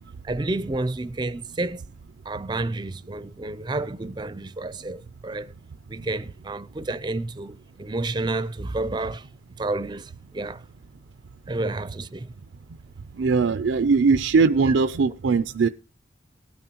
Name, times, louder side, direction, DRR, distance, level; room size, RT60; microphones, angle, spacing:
voice 1, 0.2-1.8 2.3-5.5 5.9-9.3 9.6-10.6 11.5-12.3, right 2 dB, 25° right, 0.5 m, -30 dB
voice 2, 13.2-15.7, right 4 dB, 90° right, 0.5 m, -20 dB
18.5 x 9.1 x 2.9 m
head